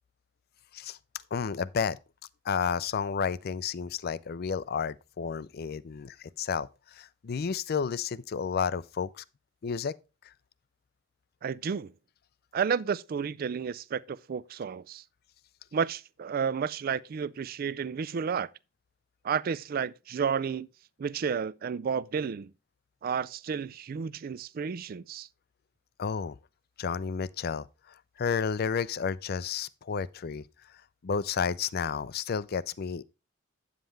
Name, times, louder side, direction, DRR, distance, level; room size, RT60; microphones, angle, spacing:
voice 1, 1.3-2.0 2.5-6.7 7.0-9.2 9.6-9.9 26.0-26.4 26.8-27.7 28.2-30.4 31.0-33.0, left 6 dB, 55° left, 0.4 m, -31 dB
voice 2, 11.4-11.9 12.5-15.0 15.7-18.5 19.2-20.7 21.0-22.5 23.0-25.3, right 6 dB, 50° right, 0.4 m, -31 dB
9.0 x 7.4 x 3.3 m
head